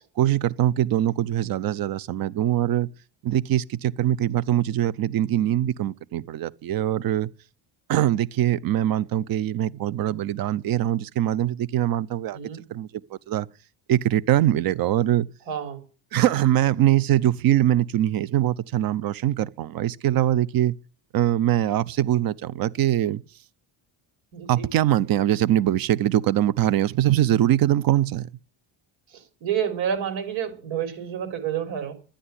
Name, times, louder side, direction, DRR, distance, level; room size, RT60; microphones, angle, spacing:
voice 1, 0.2-2.9 3.2-7.3 7.9-12.4 12.7-12.9 13.3-13.5 13.9-15.3 16.1-20.8 21.1-23.2 24.5-28.3, right 12 dB, 50° right, 0.7 m, -22 dB
voice 2, 15.5-15.8 24.3-24.5 29.1-31.9, right 8 dB, 80° right, 4.2 m, -29 dB
12.5 x 10.0 x 9.7 m
cardioid pair, 170°, 47 cm